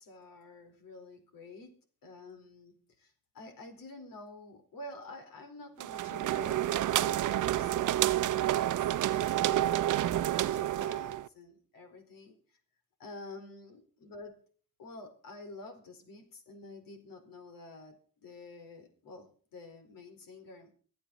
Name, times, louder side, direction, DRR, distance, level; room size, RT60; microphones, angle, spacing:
voice 1, 0.0-1.7 2.0-9.9 10.4-12.6 13.0-14.4 14.8-20.7, left 2 dB, 70° left, 6 dB, 4.5 m, -49 dB
sound 1, 5.8-11.3, right 13 dB, 60° right, 0.7 m, -29 dB
25.0 x 8.7 x 4.2 m, 0.41 s
cardioid pair, 95°, 35 cm